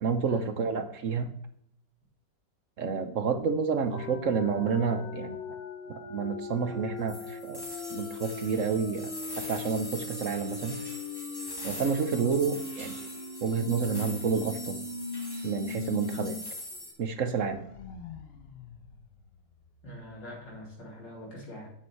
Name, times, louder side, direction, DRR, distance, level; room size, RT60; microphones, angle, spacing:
voice 1, 0.0-1.3 2.8-5.4 5.9-7.6 7.9-9.1 9.4-10.8 11.6-13.0 13.4-14.8 15.4-16.4 17.0-17.6, right 6 dB, 55° right, 9 dB, 1.0 m, -29 dB
sound 1, 3.9-16.4 16.7-16.8 17.2-19.9, left 4 dB, 45° left, 0.9 m, -40 dB
sound 2, 7.1-16.9, left 1 dB, 15° left, 1.7 m, -42 dB
voice 2, 19.8-21.7, equal, 80° left, -3 dB, 4.0 m, -44 dB
8.1 x 6.5 x 4.5 m, 0.71 s
omnidirectional pair, 1.9 m